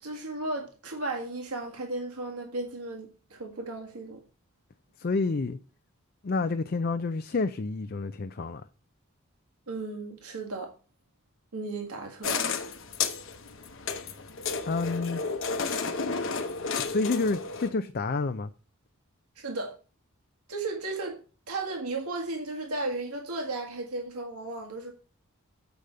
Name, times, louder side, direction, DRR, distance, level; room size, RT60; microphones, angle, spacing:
voice 1, 0.0-4.2 9.7-10.7 11.5-12.5 19.4-19.7 20.5-24.9, right 2 dB, 85° right, 1.7 m, -35 dB
voice 2, 5.0-5.6 6.2-8.6 14.7-15.2 16.8-18.5, left 3 dB, 45° left, 0.5 m, -29 dB
sound 1, 12.2-17.7, left 5 dB, 60° left, 1.0 m, -32 dB
8.2 x 5.1 x 7.5 m
head